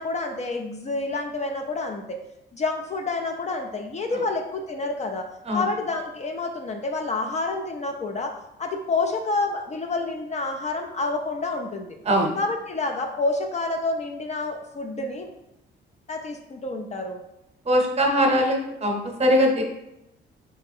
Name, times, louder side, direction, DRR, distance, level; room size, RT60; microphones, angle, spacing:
voice 1, 0.0-2.2 2.5-5.3 5.5-8.3 8.6-12.0 12.4-15.3 16.1-17.2, left 3 dB, 35° left, 4 dB, 0.4 m, -28 dB
voice 2, 17.7-19.6, equal, 30° right, 1 dB, 0.9 m, -21 dB
3.3 x 3.2 x 3.5 m, 0.87 s
cardioid pair, 90°, 20 cm